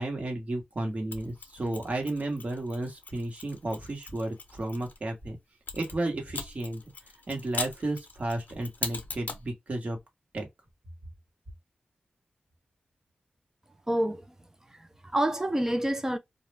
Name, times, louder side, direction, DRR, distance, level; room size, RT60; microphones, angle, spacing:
voice 1, 0.0-5.4 5.7-6.8 7.3-10.0 10.3-10.5, right 2 dB, 45° right, 1.1 m, -33 dB
Mechanisms, 1.1-5.0 5.7-9.5, left 4 dB, 65° left, 0.6 m, -40 dB
voice 2, 13.9-14.3 14.7-16.2, right 1 dB, 15° right, 0.4 m, -28 dB
2.3 x 2.0 x 3.2 m
wide cardioid pair, 95°, 3 cm